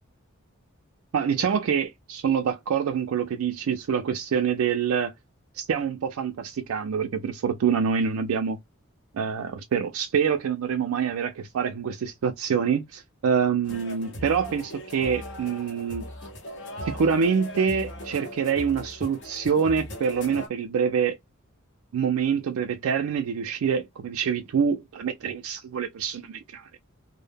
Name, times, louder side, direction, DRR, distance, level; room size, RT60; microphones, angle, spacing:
voice 1, 1.1-5.1 5.5-8.6 9.1-16.0 16.9-21.2 21.9-26.7, right 6 dB, 75° right, 0.4 m, -26 dB
sound 1, 13.6-20.5, equal, 55° left, 0.7 m, -39 dB
2.0 x 2.0 x 3.3 m
head